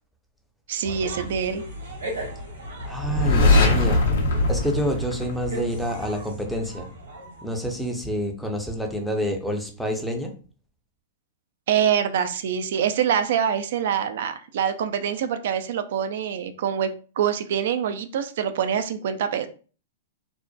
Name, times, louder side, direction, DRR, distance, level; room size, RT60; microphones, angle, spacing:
voice 1, 0.7-1.6 11.7-16.9 17.2-19.5, right 8 dB, 65° right, 10 dB, 0.3 m, -25 dB
sound 1, 0.8-7.7, equal, 80° right, 1.2 m, -36 dB
voice 2, 2.9-4.0 4.5-6.9 7.4-10.3, equal, ahead, 2 dB, 0.5 m, -28 dB
sound 2, 3.0-5.9, left 2 dB, 70° left, 0.7 m, -20 dB
2.6 x 2.0 x 2.3 m, 0.38 s
hypercardioid pair, 115°, 0 cm